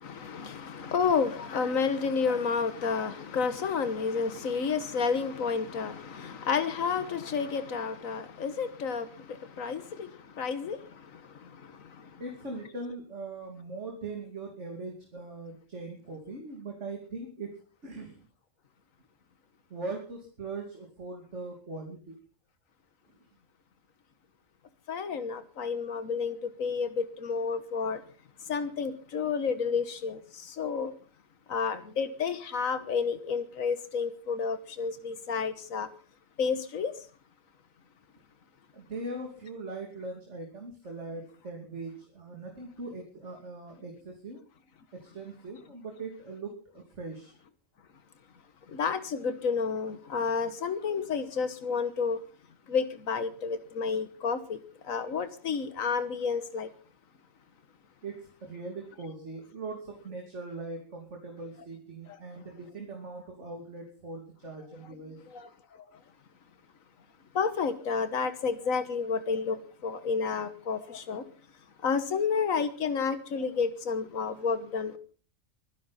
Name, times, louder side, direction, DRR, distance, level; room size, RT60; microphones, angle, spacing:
voice 1, 0.0-10.1 10.4-10.8 24.9-28.0 28.5-30.9 31.5-35.9 36.4-36.9 48.7-52.2 52.7-54.6 54.9-56.7 65.3-65.5 67.3-71.2 71.8-75.0, left 5 dB, 90° left, 1.6 m, -30 dB
voice 2, 12.2-18.2 19.7-22.1 38.7-44.4 44.9-47.3 58.0-65.2, right 3 dB, 60° right, 3.0 m, -40 dB
24.0 x 10.5 x 4.2 m
omnidirectional pair, 1.4 m